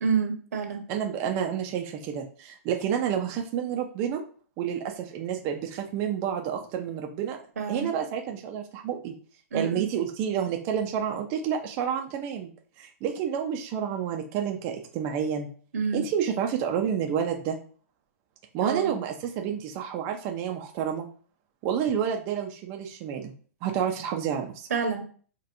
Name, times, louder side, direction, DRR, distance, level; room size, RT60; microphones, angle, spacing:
voice 1, 0.0-0.8 7.6-7.9 9.5-9.9 15.7-16.0 18.6-19.0 24.7-25.0, right 5 dB, 85° right, 4 dB, 1.0 m, -28 dB
voice 2, 0.9-4.2 4.6-7.4 7.7-9.1 9.5-12.5 12.8-15.5 15.9-17.6 18.5-21.1 21.6-23.3 23.6-24.7, right 8 dB, 30° right, 3 dB, 0.4 m, -29 dB
4.2 x 2.2 x 2.5 m, 0.43 s
hypercardioid pair, 155°, 8 cm